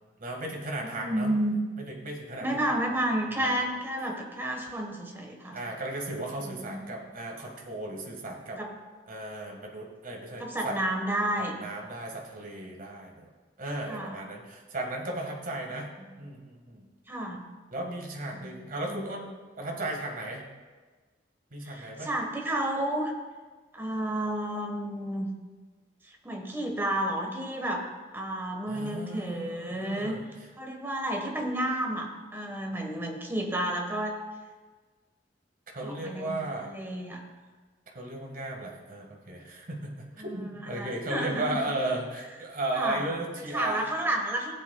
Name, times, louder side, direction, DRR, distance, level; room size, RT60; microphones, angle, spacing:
voice 1, 0.2-1.3 1.8-2.7 3.4-3.5 5.5-8.6 9.1-10.8 11.6-13.3 13.6-15.9 16.2-16.8 17.7-19.3 19.6-20.5 21.5-22.1 28.7-30.5 35.7-36.8 37.9-43.9, right 2 dB, 50° right, 0 dB, 1.6 m, -35 dB
voice 2, 0.9-1.6 2.4-5.6 6.5-7.0 8.6-8.7 10.4-11.5 13.9-14.2 17.1-17.5 18.3-18.5 18.9-19.1 21.6-23.1 23.7-25.3 26.2-27.8 28.1-30.2 30.6-34.2 35.8-36.3 36.6-37.2 40.2-41.6 42.7-43.0 43.5-44.5, right 1 dB, 15° right, 2 dB, 1.3 m, -31 dB
16.0 x 8.0 x 2.3 m, 1.4 s
head